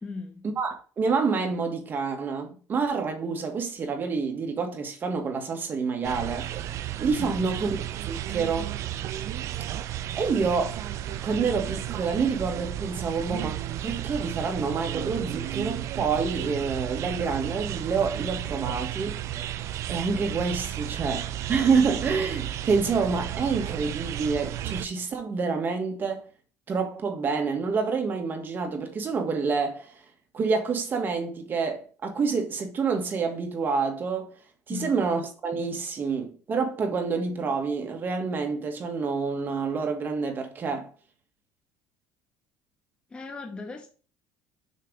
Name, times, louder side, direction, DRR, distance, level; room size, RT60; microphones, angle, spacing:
voice 1, 0.0-0.5 7.2-7.6 34.7-35.0 43.1-43.9, left 4 dB, 15° left, 0.9 m, -37 dB
voice 2, 0.6-6.5 7.0-7.8 8.1-8.7 10.1-10.8 11.2-19.2 19.9-26.3 26.7-30.0 30.3-34.3 34.7-40.9, right 5 dB, 35° right, 1.5 m, -28 dB
sound 1, 6.0-24.9, right 12 dB, 55° right, 0.5 m, -33 dB
6.7 x 3.3 x 5.1 m
cardioid pair, 135°, 6 cm